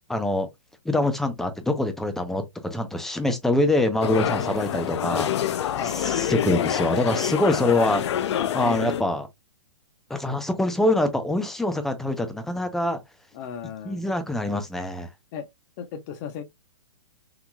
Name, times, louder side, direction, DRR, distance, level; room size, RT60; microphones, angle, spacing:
voice 1, 0.1-0.5 0.9-5.7 6.0-8.0 8.5-9.3 10.1-13.0 13.9-15.1, left 1 dB, ahead, 0.5 m, -24 dB
sound 1, 4.0-9.0, left 10 dB, 65° left, 0.5 m, -26 dB
voice 2, 4.3-4.6 5.7-6.0 7.9-8.0 13.3-14.0 15.3-15.5 15.8-16.4, left 8 dB, 35° left, 0.7 m, -35 dB
3.9 x 2.9 x 2.2 m
hypercardioid pair, 145°, 16 cm